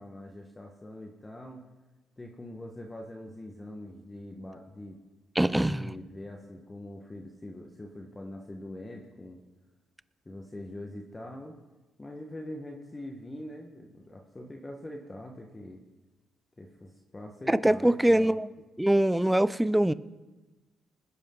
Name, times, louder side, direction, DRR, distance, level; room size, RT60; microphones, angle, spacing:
voice 1, 0.0-1.7 2.2-5.0 5.4-9.4 10.2-11.6 12.0-15.8 16.6-18.3, left 1 dB, 20° left, 1.4 m, -43 dB
voice 2, 5.4-5.9 17.5-18.5 18.8-19.9, right 1 dB, 5° right, 0.5 m, -23 dB
20.5 x 10.0 x 3.9 m
cardioid pair, 90°, 0 cm